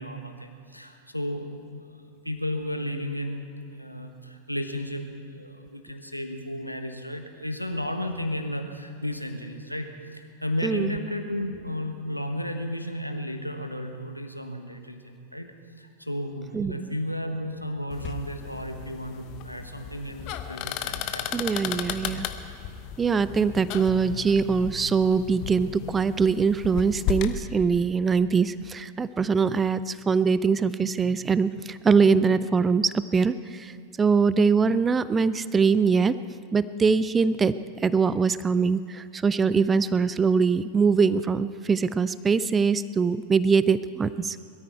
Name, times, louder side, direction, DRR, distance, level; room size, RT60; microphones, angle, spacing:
voice 1, 0.0-15.5 15.8-21.3, equal, 90° left, 6 dB, 1.2 m, -33 dB
voice 2, 16.5-16.9 21.3-22.3 23.0-33.7 34.0-36.2 36.5-37.5 37.8-44.4, right 5 dB, 15° right, 16 dB, 0.4 m, -23 dB
sound 1, 17.9-27.4, left 10 dB, 40° left, 0.9 m, -35 dB
21.5 x 13.5 x 4.6 m, 2.6 s
figure-of-eight pair, 90°, 0 cm